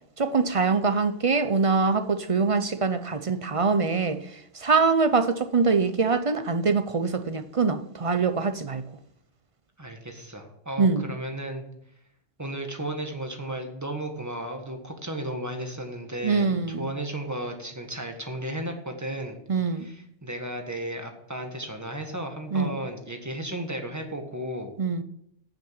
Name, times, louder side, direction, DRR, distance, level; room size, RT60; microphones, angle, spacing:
voice 1, 0.2-4.2 4.5-8.8 10.8-11.0 16.2-16.9 19.5-19.9 22.5-22.7 24.8-25.0, right 4 dB, 40° right, 0.5 m, -24 dB
voice 2, 9.8-11.6 12.4-19.4 19.7-24.7, right 1 dB, 15° right, 1.6 m, -34 dB
9.0 x 7.7 x 8.7 m
omnidirectional pair, 1.3 m